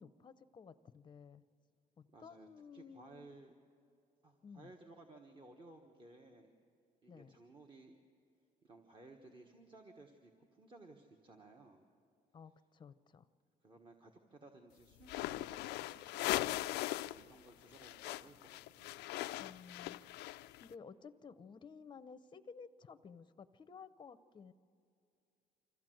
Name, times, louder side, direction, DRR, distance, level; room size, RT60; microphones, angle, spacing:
voice 1, 0.0-1.4 2.0-3.4 4.4-4.7 7.1-7.3 12.3-13.3 19.4-24.5, left 5 dB, 25° left, 12 dB, 0.7 m, -55 dB
voice 2, 2.1-3.5 4.2-6.6 7.0-8.0 8.6-11.9 13.6-19.0, right 2 dB, 30° right, 3 dB, 1.3 m, -58 dB
sound 1, 15.0-17.2 17.5-20.6, left 17 dB, 80° left, 0.4 m, -39 dB
25.5 x 14.5 x 7.8 m, 2.5 s
cardioid pair, 110°, 17 cm